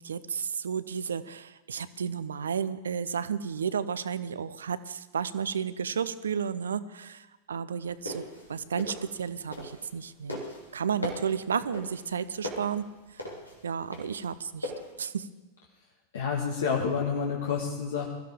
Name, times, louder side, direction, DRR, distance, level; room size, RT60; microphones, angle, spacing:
voice 1, 0.0-8.2 8.5-10.4 10.7-12.9 13.6-14.7 15.0-15.3, right 7 dB, 70° right, 15 dB, 0.6 m, -32 dB
sound 1, 7.9-10.0 10.3-14.9, left 1 dB, 85° left, 2.8 m, -38 dB
voice 2, 16.1-18.1, left 6 dB, 65° left, -1 dB, 1.8 m, -29 dB
21.5 x 14.0 x 3.7 m, 1.2 s
figure-of-eight pair, 90°, 0 cm